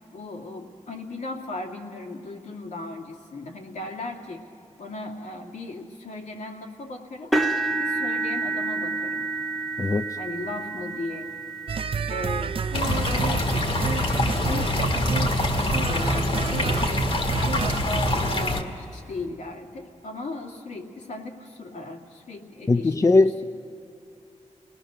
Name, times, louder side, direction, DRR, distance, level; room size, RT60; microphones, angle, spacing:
voice 1, 0.1-4.4 4.8-7.3 7.7-9.3 10.2-11.3 12.0-16.9 17.6-23.5, left 2 dB, 80° left, 0 dB, 2.5 m, -37 dB
sound 1, 7.3-15.4 16.0-16.2 16.7-16.8 18.2-18.3, right 3 dB, ahead, 0.9 m, -30 dB
sound 2, 11.7-18.3, right 6 dB, 45° right, 0.5 m, -29 dB
sound 3, 12.7-18.6, left 2 dB, 50° left, 1.6 m, -25 dB
voice 2, 22.7-23.5, left 3 dB, 25° left, 10 dB, 0.5 m, -19 dB
29.5 x 19.0 x 6.5 m, 2.7 s
wide cardioid pair, 125°, 12 cm